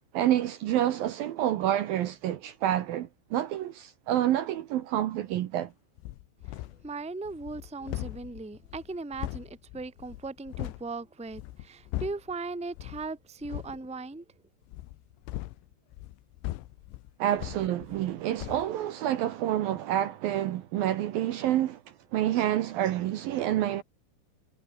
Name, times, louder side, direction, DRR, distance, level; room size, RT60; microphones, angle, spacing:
voice 1, 0.1-5.7 17.2-21.8 22.1-23.8, right 12 dB, 75° right, 2.2 m, -28 dB
sound 1, 6.0-6.9 7.3-10.9 11.3-12.4 12.7-13.1 13.4-13.8 14.7-18.1 18.4-18.7, left 17 dB, 85° left, 3.4 m, -39 dB
voice 2, 6.8-14.2, right 3 dB, 5° right, 1.3 m, -38 dB
omnidirectional pair, 5.5 m